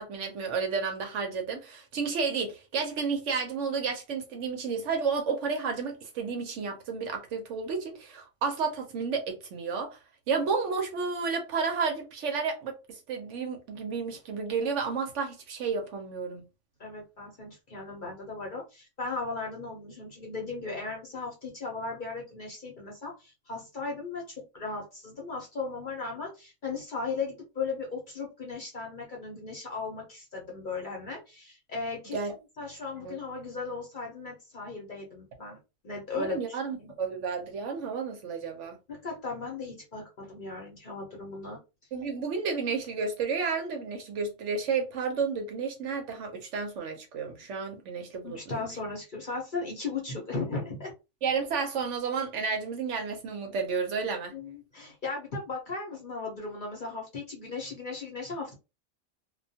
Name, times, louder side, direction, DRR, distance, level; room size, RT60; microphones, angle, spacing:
voice 1, 0.0-10.0 10.3-16.4 32.1-32.3 33.0-33.1 36.1-38.8 41.9-48.6 51.2-54.3, right 5 dB, 65° right, 0.9 m, -31 dB
voice 2, 16.8-32.2 32.6-35.6 35.8-36.9 38.9-41.6 48.2-50.9 54.3-58.5, left 4 dB, 45° left, 0.7 m, -37 dB
2.3 x 2.2 x 2.7 m
omnidirectional pair, 1.4 m